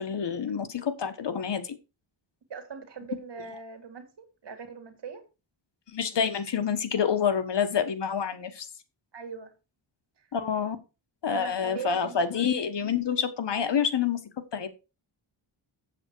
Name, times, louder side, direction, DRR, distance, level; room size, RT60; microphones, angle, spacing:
voice 1, 0.0-1.8 5.9-8.7 10.3-10.8 11.2-14.2 14.5-14.7, left 7 dB, 65° left, 1.4 m, -27 dB
voice 2, 2.5-5.2 9.1-9.5 10.2-10.3 11.3-12.3, right 6 dB, 60° right, 2.0 m, -41 dB
8.0 x 7.5 x 4.5 m
wide cardioid pair, 95°, 46 cm